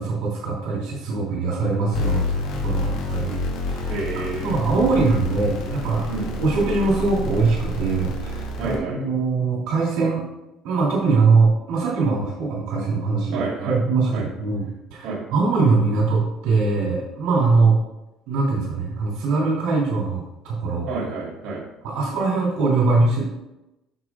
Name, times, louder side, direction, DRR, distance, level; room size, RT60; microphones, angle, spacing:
voice 1, 0.0-3.4 3.7-3.9 4.4-6.0 6.4-10.2 10.6-17.8 18.3-20.9 21.8-23.2, right 4 dB, 75° right, -4 dB, 2.8 m, -22 dB
sound 1, 1.9-8.8, left 2 dB, 75° left, 2.3 m, -28 dB
voice 2, 3.9-4.6 6.1-6.4 8.5-9.0 13.3-13.8 14.1-14.3 15.0-15.2 20.8-21.6, right 3 dB, 60° right, -6 dB, 2.8 m, -29 dB
13.5 x 5.0 x 2.4 m, 0.95 s
cardioid pair, 155°, 0 cm